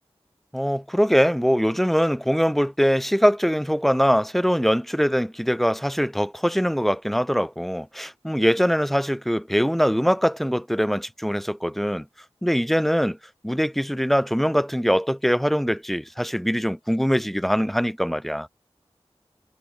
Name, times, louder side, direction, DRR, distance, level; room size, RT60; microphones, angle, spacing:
voice 1, 0.5-12.0 12.4-13.2 13.4-18.5, equal, ahead, 0.7 m, -22 dB
wide cardioid pair, 45°, 11 cm